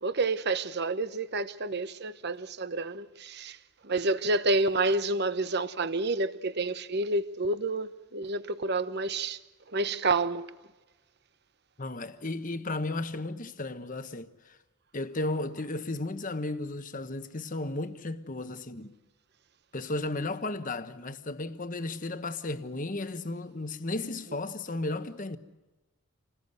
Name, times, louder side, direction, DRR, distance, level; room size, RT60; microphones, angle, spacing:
voice 1, 0.0-3.6 3.8-9.4 9.7-10.5, right 2 dB, 50° right, 1.0 m, -29 dB
voice 2, 11.8-14.6 14.9-18.9 19.7-25.4, left 2 dB, 40° left, 1.2 m, -34 dB
28.0 x 19.5 x 8.0 m
head